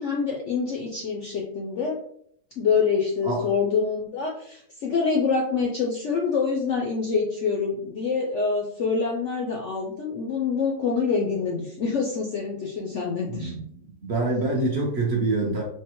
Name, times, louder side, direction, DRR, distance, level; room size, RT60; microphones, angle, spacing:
voice 1, 0.0-2.0 2.6-13.5, left 5 dB, 70° left, -1 dB, 0.7 m, -26 dB
voice 2, 13.3-13.6 14.0-15.6, right 2 dB, 55° right, -1 dB, 0.7 m, -25 dB
4.7 x 2.2 x 2.9 m, 0.66 s
omnidirectional pair, 1.8 m